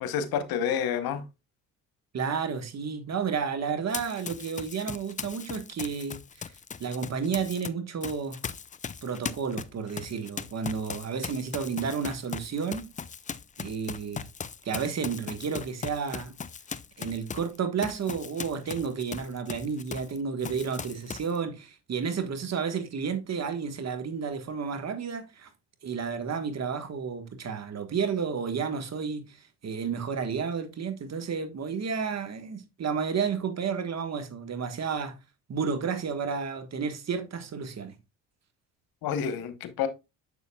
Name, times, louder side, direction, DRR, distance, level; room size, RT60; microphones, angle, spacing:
voice 1, 0.0-1.2 39.0-39.9, left 8 dB, 70° left, 1.1 m, -29 dB
voice 2, 2.1-6.5 6.8-8.4 9.0-12.9 13.6-14.3 14.6-16.4 17.0-25.5 25.8-29.4 29.6-35.2 35.5-37.9, right 6 dB, 45° right, 1.3 m, -31 dB
Run, 3.9-7.7 8.0-20.2 20.4-21.4, left 6 dB, 20° left, 0.4 m, -39 dB
6.9 x 6.8 x 2.3 m
supercardioid pair, 65°, 37 cm